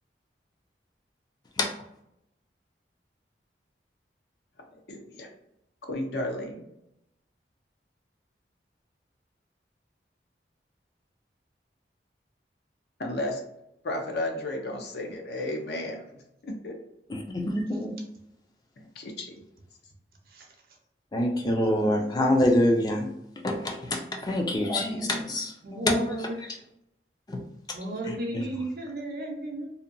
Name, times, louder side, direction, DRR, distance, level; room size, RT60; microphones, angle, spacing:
voice 1, 4.9-5.3 5.9-6.6 13.0-13.4 13.8-16.0 16.4-16.8 18.8-19.3, left 1 dB, 70° left, 2 dB, 0.6 m, -33 dB
voice 2, 17.1-17.9 21.1-23.1 23.4-26.3 27.3-27.4 28.0-28.5, left 1 dB, 20° left, 1 dB, 0.4 m, -26 dB
voice 3, 24.6-25.2 25.6-26.5 27.7-29.7, right 1 dB, 55° right, 2 dB, 0.6 m, -34 dB
2.7 x 2.2 x 2.5 m, 0.82 s
head